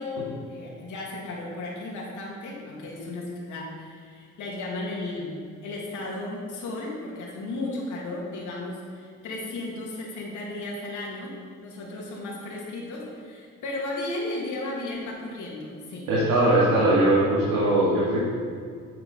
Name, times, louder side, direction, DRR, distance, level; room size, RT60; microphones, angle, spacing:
voice 1, 0.0-5.4 5.6-11.3 11.6-16.1, left 2 dB, 75° left, -3 dB, 2.2 m, -34 dB
voice 2, 16.1-18.2, right 1 dB, 80° right, -7 dB, 2.0 m, -20 dB
9.5 x 4.8 x 5.3 m, 2.1 s
cardioid pair, 90°, 30 cm